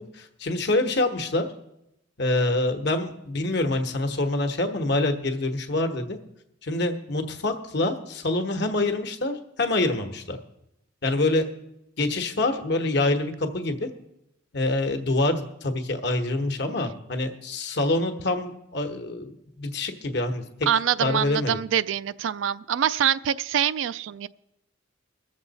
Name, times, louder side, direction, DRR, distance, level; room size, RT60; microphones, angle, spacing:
voice 1, 0.1-1.5 2.2-6.2 6.6-10.4 11.0-11.5 12.0-13.9 14.5-20.4 21.0-21.6, left 2 dB, 60° left, 1.1 m, -26 dB
voice 2, 20.7-24.3, right 9 dB, 75° right, 0.3 m, -25 dB
21.5 x 7.2 x 4.1 m
head